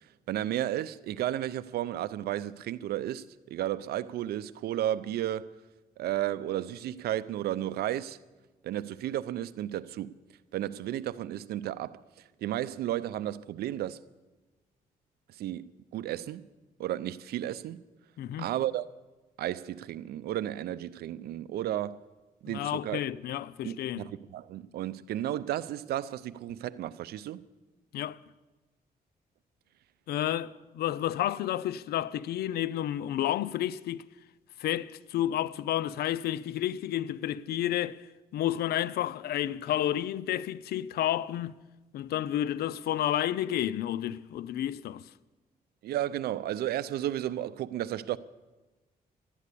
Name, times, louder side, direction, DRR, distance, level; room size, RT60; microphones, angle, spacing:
voice 1, 0.0-5.5 6.0-8.2 8.6-10.1 10.5-12.0 12.4-14.0 15.4-16.4 16.8-17.8 18.4-18.9 19.4-22.0 22.4-23.0 23.6-27.4 45.8-48.2, right 12 dB, 85° right, 0.5 m, -33 dB
voice 2, 18.2-18.5 22.5-24.0 27.9-28.2 30.1-34.0 34.6-38.0 38.3-41.6 41.9-45.0, left 12 dB, 85° left, 0.5 m, -31 dB
12.5 x 11.0 x 8.4 m
cardioid pair, 85°, 16 cm